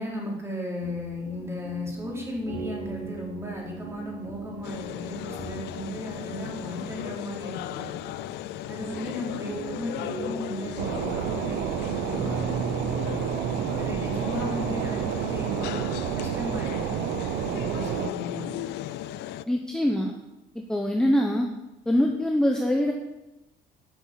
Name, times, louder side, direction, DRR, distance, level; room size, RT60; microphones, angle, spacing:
voice 1, 0.0-7.9 8.7-12.9 13.8-15.8 16.1-18.5, left 1 dB, 15° right, -3 dB, 3.6 m, -36 dB
sound 1, 0.8-18.6, right 3 dB, 55° right, 3.0 m, -40 dB
sound 2, 4.6-19.5, left 13 dB, 80° left, 0.5 m, -36 dB
sound 3, 10.8-18.1, right 12 dB, 90° right, 0.6 m, -30 dB
voice 2, 19.5-20.1 20.5-21.5 21.9-22.9, equal, 5° left, 1 dB, 1.0 m, -23 dB
10.5 x 6.0 x 6.9 m, 1.0 s
cardioid pair, 110°, 17 cm